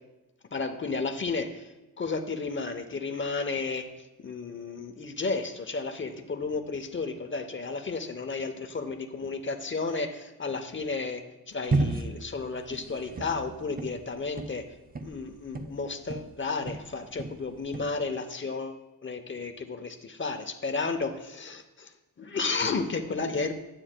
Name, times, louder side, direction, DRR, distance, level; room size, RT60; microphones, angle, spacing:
voice 1, 0.5-1.7 2.0-3.9 4.2-14.6 15.0-23.5, left 4 dB, 30° left, 6 dB, 0.8 m, -33 dB
sound 1, 11.7-16.4 16.7-18.0, right 3 dB, 25° right, 0.4 m, -33 dB
12.0 x 8.8 x 2.2 m, 1.0 s
wide cardioid pair, 100°, 37 cm